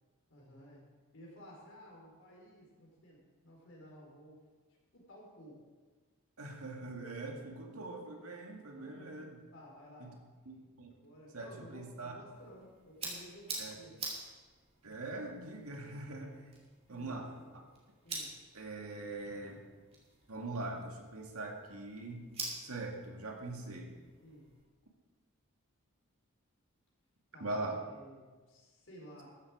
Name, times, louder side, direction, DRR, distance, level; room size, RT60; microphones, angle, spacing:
voice 1, 0.3-0.9 1.1-4.4 4.9-5.6 7.3-7.4 8.7-9.1 9.5-10.2 11.0-13.9 16.9-17.6 18.0-18.4 24.2-24.5 27.3-29.3, equal, 60° left, -3 dB, 4.6 m, -55 dB
voice 2, 6.4-9.4 10.0-10.1 10.5-10.9 11.3-12.2 13.6-13.7 14.8-16.5 16.9-17.2 17.5-17.6 18.5-19.6 20.3-22.3 22.6-24.0 27.4-27.8, right 2 dB, 85° right, 2 dB, 2.1 m, -42 dB
sound 1, 12.3-24.6, right 3 dB, 25° right, 3.1 m, -48 dB
14.0 x 11.5 x 4.7 m, 1.4 s
head